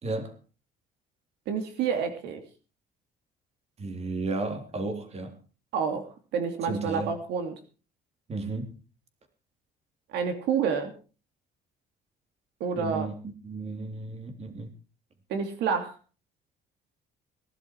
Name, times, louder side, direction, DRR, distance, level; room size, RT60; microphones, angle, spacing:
voice 1, 0.0-0.3 3.8-5.4 6.7-7.1 8.3-8.7 12.8-13.1 13.4-14.7, right 3 dB, 40° right, 6 dB, 3.5 m, -33 dB
voice 2, 1.5-2.4 5.7-7.5 10.1-10.9 12.6-13.1 15.3-15.9, right 6 dB, 85° right, 6 dB, 2.9 m, -29 dB
18.5 x 12.0 x 4.8 m, 0.36 s
cardioid pair, 110°, 17 cm